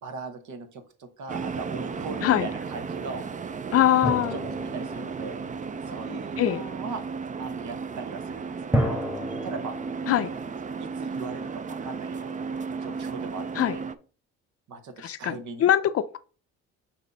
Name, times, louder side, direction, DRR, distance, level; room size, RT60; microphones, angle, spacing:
voice 1, 0.0-3.2 4.1-5.4 5.9-7.0 7.4-9.0 9.4-9.7 10.3-10.4 10.8-13.8 14.7-15.7, right 4 dB, 70° right, 1.1 m, -39 dB
sound 1, 1.3-13.9, right 5 dB, 25° right, 0.4 m, -34 dB
voice 2, 3.7-4.4 6.4-6.6 10.1-10.3 13.6-13.8 15.0-16.1, left 11 dB, 50° left, 0.5 m, -22 dB
sound 2, 4.0-6.4 8.7-11.6, equal, 5° right, 1.1 m, -32 dB
6.2 x 2.9 x 5.1 m
cardioid pair, 90°, 30 cm